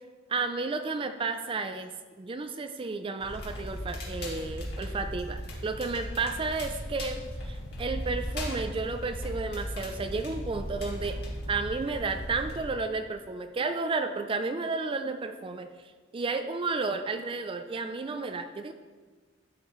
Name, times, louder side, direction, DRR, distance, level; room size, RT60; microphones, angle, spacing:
voice 1, 0.3-11.2 11.5-18.7, right 4 dB, 25° right, 8 dB, 0.4 m, -32 dB
Crackle, 3.2-12.6, equal, 60° left, 2.2 m, -37 dB
12.0 x 6.5 x 3.1 m, 1.4 s
head